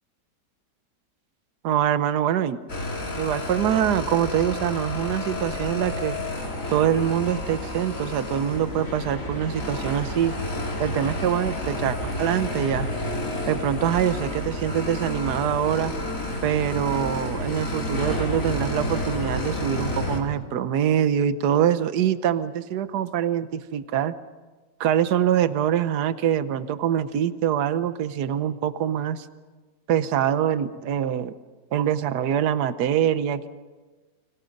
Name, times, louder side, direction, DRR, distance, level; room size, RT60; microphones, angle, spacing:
voice 1, 1.6-2.6 3.2-6.2 6.7-10.3 10.8-12.9 13.5-15.9 16.4-24.1 24.8-29.3 29.9-31.3 31.7-33.5, right 10 dB, 70° right, 13 dB, 1.5 m, -24 dB
sound 1, 2.7-20.2, left 1 dB, 50° left, 3.8 m, -30 dB
30.0 x 25.5 x 5.3 m, 1.3 s
omnidirectional pair, 1.8 m